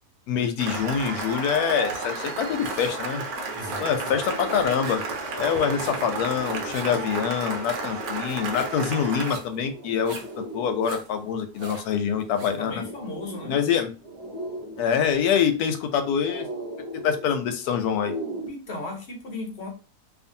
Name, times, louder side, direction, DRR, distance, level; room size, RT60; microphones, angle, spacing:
voice 1, 0.3-3.2 3.8-5.0 5.4-10.2 10.5-12.8 13.4-13.9 14.8-16.5 16.8-18.1, left 7 dB, 90° left, 7 dB, 1.1 m, -25 dB
Cheering / Applause, 0.6-9.4, right 3 dB, 80° right, 1.1 m, -32 dB
sound 1, 2.2-3.1 3.4-12.7, right 4 dB, 60° right, 0.6 m, -43 dB
sound 2, 2.4-18.5, right 1 dB, 45° right, 1.1 m, -40 dB
voice 2, 3.5-4.1 12.6-13.6 18.5-19.7, left 2 dB, 50° left, 1 dB, 1.0 m, -36 dB
2.6 x 2.5 x 2.6 m, 0.34 s
omnidirectional pair, 1.6 m